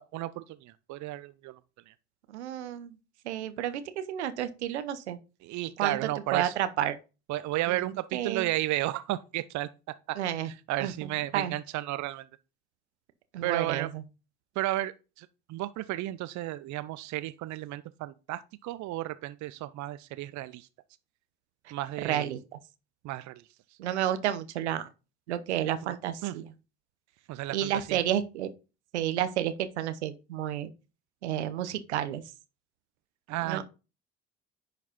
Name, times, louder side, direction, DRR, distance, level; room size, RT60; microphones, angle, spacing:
voice 1, 0.0-1.5 1.9-2.0 5.4-6.5 7.3-9.7 10.1-10.2 10.7-12.2 13.4-13.9 14.6-14.9 15.2-20.7 21.7-22.3 23.0-23.4 25.9-26.0 26.2-26.3 27.3-28.0 33.3-33.6, right 16 dB, 60° right, 0.7 m, -33 dB
voice 2, 2.3-3.0 3.2-5.2 5.8-6.0 6.3-7.0 7.7-8.5 10.2-10.5 10.8-11.5 13.3-14.0 22.0-22.6 23.8-24.9 25.3-26.5 27.5-28.5 28.9-30.7 31.2-32.2 33.4-33.6, right 11 dB, 85° right, 0.9 m, -31 dB
10.5 x 4.2 x 4.3 m
hypercardioid pair, 55°, 33 cm